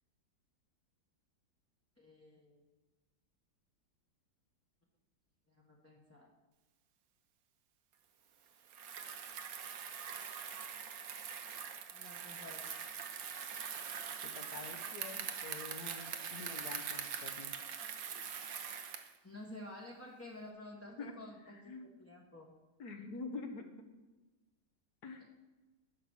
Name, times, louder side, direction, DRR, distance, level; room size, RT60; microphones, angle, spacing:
voice 1, 2.0-2.6 5.5-6.3 11.9-12.7 19.2-22.5, left 1 dB, 10° left, -3 dB, 1.0 m, -51 dB
Bicycle, 8.7-19.2, right 7 dB, 60° right, 1.2 m, -43 dB
voice 2, 14.2-17.5 21.0-21.2 21.5-22.0 22.8-23.6 25.0-25.2, left 4 dB, 65° left, 5 dB, 1.5 m, -47 dB
11.0 x 5.9 x 6.3 m, 1.2 s
omnidirectional pair, 1.9 m